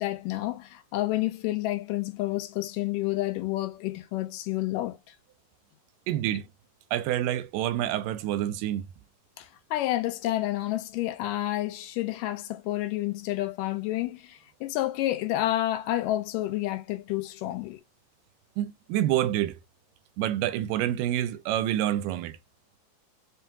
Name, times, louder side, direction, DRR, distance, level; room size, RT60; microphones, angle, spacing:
voice 1, 0.0-5.2 9.4-17.8, left 15 dB, 80° left, 2.3 m, -30 dB
voice 2, 6.1-6.5 6.9-8.9 18.6-19.6 20.2-22.4, right 12 dB, 80° right, 2.1 m, -27 dB
5.6 x 2.8 x 2.3 m
omnidirectional pair, 3.8 m